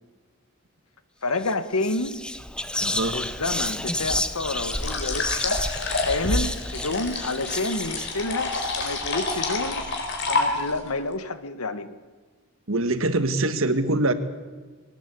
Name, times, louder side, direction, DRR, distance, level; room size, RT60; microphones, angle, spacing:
voice 1, 1.2-2.2 3.1-5.6 6.0-9.8 10.3-11.9, left 2 dB, 85° left, 11 dB, 1.5 m, -29 dB
Whispering, 1.3-1.5 1.8-9.9, left 1 dB, 5° left, 0.6 m, -30 dB
voice 2, 2.8-3.2 12.7-14.1, right 2 dB, 65° right, 10 dB, 1.6 m, -23 dB
sound 1, 4.7-10.9, left 3 dB, 55° left, 4.3 m, -29 dB
21.5 x 18.5 x 8.4 m, 1.4 s
head